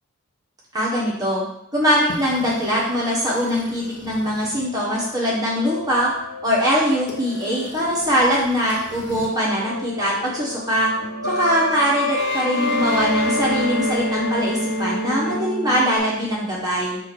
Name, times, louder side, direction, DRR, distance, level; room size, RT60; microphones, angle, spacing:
voice 1, 0.7-1.4 1.7-6.1 6.4-10.9 11.4-17.0, equal, 15° right, -6 dB, 1.6 m, -22 dB
sound 1, 2.1-9.3 9.5-16.0, left 1 dB, 50° left, 1.3 m, -28 dB
8.3 x 2.9 x 6.2 m, 0.78 s
head